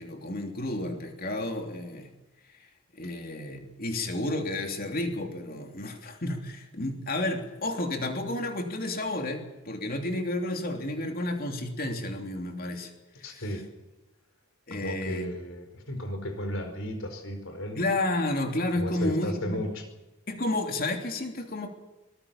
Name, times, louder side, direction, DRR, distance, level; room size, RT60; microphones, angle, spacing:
voice 1, 0.0-2.1 2.9-12.9 13.2-13.5 14.7-15.3 17.7-19.6 20.3-21.7, left 1 dB, 40° left, 3 dB, 3.2 m, -31 dB
voice 2, 13.2-13.7 14.7-17.8 18.8-19.8, equal, 60° left, 8 dB, 4.9 m, -34 dB
24.0 x 19.5 x 7.3 m, 1.1 s
head